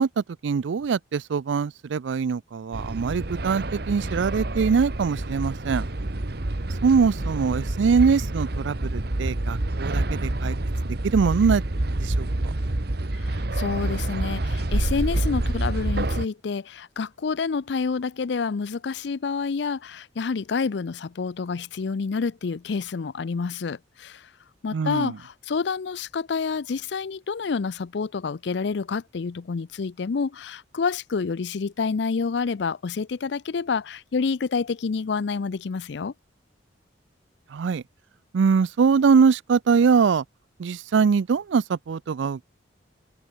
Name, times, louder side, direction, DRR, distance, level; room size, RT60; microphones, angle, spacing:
voice 1, 0.0-5.9 6.8-10.6 11.0-11.6 12.0-12.5 24.7-25.2 37.5-37.8 38.3-40.2 40.6-42.5, right 5 dB, 80° right, 0.4 m, -22 dB
sound 1, 2.7-16.3, right 1 dB, 60° right, 1.4 m, -27 dB
voice 2, 13.1-24.3 24.6-36.1, left 5 dB, 65° left, 0.5 m, -28 dB
head